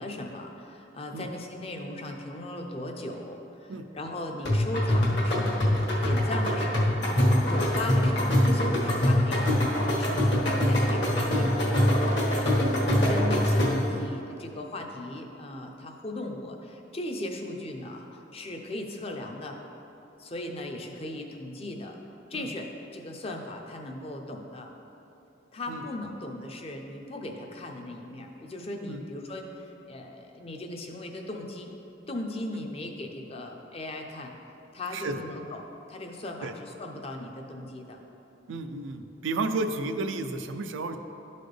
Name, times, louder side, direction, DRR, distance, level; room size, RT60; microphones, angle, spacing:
voice 1, 0.0-5.7 6.0-7.0 7.5-19.6 20.2-22.0 22.3-24.7 25.5-31.7 32.1-34.4 34.7-38.0, left 1 dB, 30° left, 2 dB, 0.6 m, -38 dB
sound 1, 4.5-14.0, left 1 dB, 60° left, 1.4 m, -24 dB
voice 2, 38.5-41.0, right 3 dB, 85° right, 8 dB, 0.4 m, -32 dB
12.0 x 4.1 x 3.3 m, 2.9 s
head